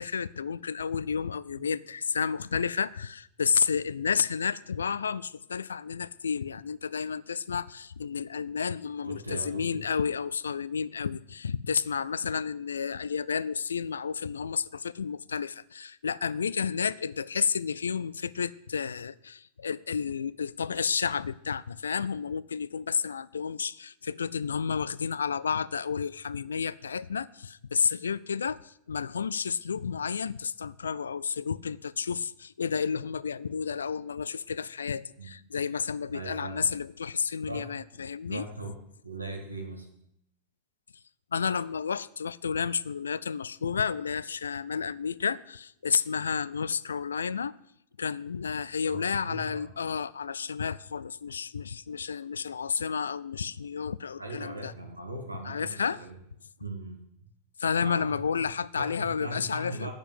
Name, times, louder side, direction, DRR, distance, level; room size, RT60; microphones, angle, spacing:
voice 1, 0.0-38.5 41.3-47.5 48.0-54.7 55.4-56.0 57.6-59.9, left 6 dB, 70° left, 20 dB, 0.3 m, -31 dB
voice 2, 9.0-9.8 35.2-35.4 36.1-36.7 37.5-37.7 38.3-38.8 39.0-39.9 48.8-49.7 54.2-56.2 56.6-57.0 57.8-58.5 58.8-59.9, right 2 dB, 85° right, 3 dB, 1.9 m, -39 dB
8.9 x 7.2 x 7.5 m, 0.74 s
figure-of-eight pair, 90°, 0 cm